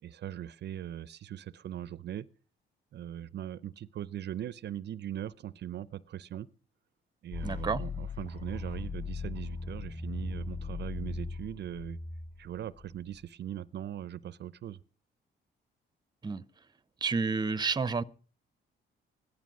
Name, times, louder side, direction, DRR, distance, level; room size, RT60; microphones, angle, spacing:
voice 1, 0.0-2.3 2.9-6.5 7.2-12.0 12.4-14.8, right 11 dB, 60° right, 0.6 m, -40 dB
sound 1, 7.3-13.2, left 4 dB, 35° left, 5.1 m, -39 dB
voice 2, 7.4-7.8 16.2-16.4 17.0-18.0, right 4 dB, 20° right, 0.7 m, -30 dB
16.0 x 11.5 x 6.1 m
cardioid pair, 90°, 20 cm